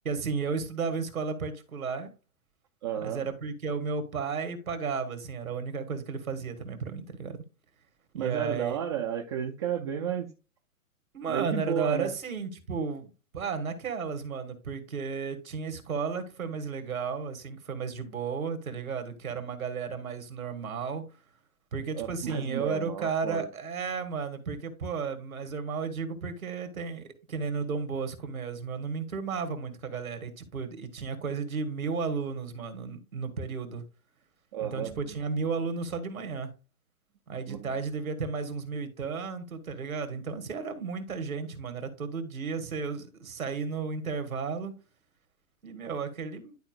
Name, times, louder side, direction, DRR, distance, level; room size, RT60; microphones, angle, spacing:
voice 1, 0.1-2.1 3.0-7.4 8.1-8.8 11.1-21.0 21.7-33.8 34.6-36.5 37.3-44.8 45.6-46.6, right 5 dB, 80° right, 1.9 m, -33 dB
voice 2, 2.8-3.2 8.1-10.3 11.3-12.1 21.9-23.4 34.5-34.9 37.5-37.7, right 9 dB, 20° right, 0.4 m, -32 dB
12.0 x 4.3 x 2.5 m
figure-of-eight pair, 120°, 42 cm